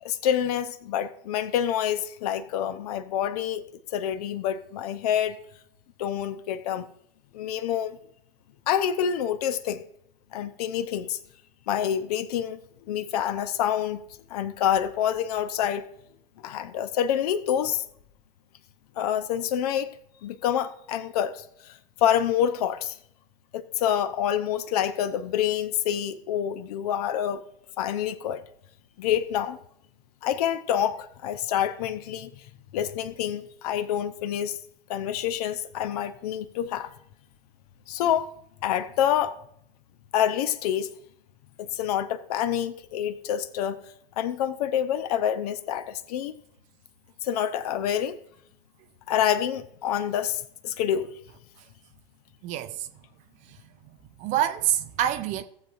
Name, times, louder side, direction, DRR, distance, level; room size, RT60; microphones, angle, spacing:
voice 1, 0.0-3.6 3.9-5.4 6.0-6.9 7.3-8.0 8.7-9.8 10.3-11.2 11.7-12.6 12.9-14.0 14.3-15.9 16.4-17.8 19.0-19.9 20.2-23.0 23.5-27.4 27.8-28.4 29.0-29.6 30.2-32.3 32.7-34.6 34.9-36.9 37.9-38.3 38.6-39.4 40.1-40.9 41.6-43.8 44.2-46.3 47.2-48.2 49.1-51.1, left 10 dB, 40° left, 0.7 m, -27 dB
voice 2, 52.4-52.9 53.5-53.6 54.2-55.4, right 11 dB, 25° right, 0.6 m, -26 dB
17.5 x 7.6 x 2.5 m
figure-of-eight pair, 105°, 29 cm